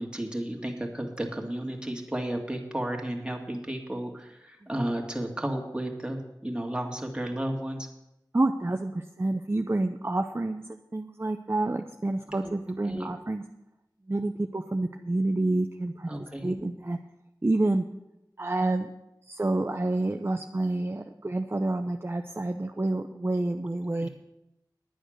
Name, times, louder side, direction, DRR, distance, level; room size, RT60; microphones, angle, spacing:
voice 1, 0.0-7.9 12.4-13.1 16.1-16.6 23.9-24.1, right 1 dB, 10° right, 1 dB, 2.0 m, -33 dB
voice 2, 8.3-13.4 14.1-16.1 16.4-17.0 17.4-17.8 18.4-18.9 19.3-24.1, right 2 dB, 35° right, 6 dB, 0.6 m, -28 dB
10.0 x 9.0 x 6.4 m, 0.90 s
wide cardioid pair, 50°, 8 cm